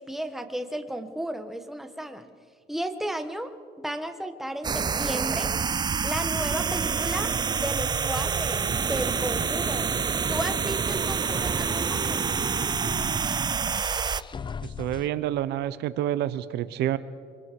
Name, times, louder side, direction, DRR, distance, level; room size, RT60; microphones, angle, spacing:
voice 1, 0.0-2.3 2.7-5.5 6.0-9.9 10.3-12.4, right 1 dB, ahead, 7 dB, 1.5 m, -34 dB
sound 1, 4.6-14.2, right 6 dB, 25° right, 0.5 m, -27 dB
sound 2, 10.1-15.1, left 6 dB, 30° left, 0.6 m, -41 dB
voice 2, 14.6-17.0, right 12 dB, 80° right, 15 dB, 0.8 m, -28 dB
25.5 x 24.0 x 4.7 m, 2.2 s
cardioid pair, 110°, 17 cm